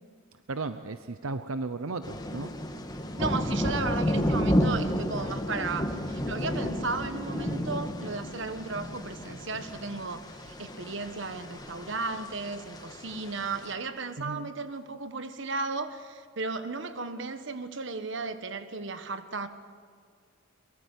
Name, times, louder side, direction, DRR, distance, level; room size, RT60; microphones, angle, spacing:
voice 1, 0.5-2.5 14.2-14.5, right 3 dB, 80° right, 10 dB, 0.8 m, -35 dB
sound 1, 2.0-13.7, equal, 20° left, 1.5 m, -32 dB
voice 2, 3.2-19.5, right 3 dB, 55° right, 10 dB, 1.4 m, -35 dB
23.0 x 22.5 x 8.5 m, 2.1 s
head